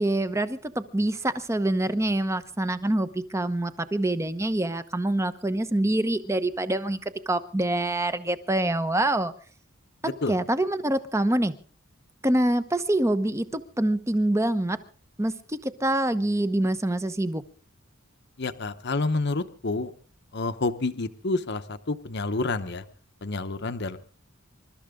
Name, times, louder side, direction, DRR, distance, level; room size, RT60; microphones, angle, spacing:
voice 1, 0.0-9.3 10.3-11.5 12.2-14.8 15.2-17.4, right 1 dB, 15° right, 12 dB, 1.0 m, -25 dB
voice 2, 10.0-10.4 18.4-19.9 20.3-22.8 23.2-24.0, left 3 dB, 55° left, 9 dB, 1.0 m, -29 dB
27.5 x 13.0 x 3.7 m, 0.39 s
head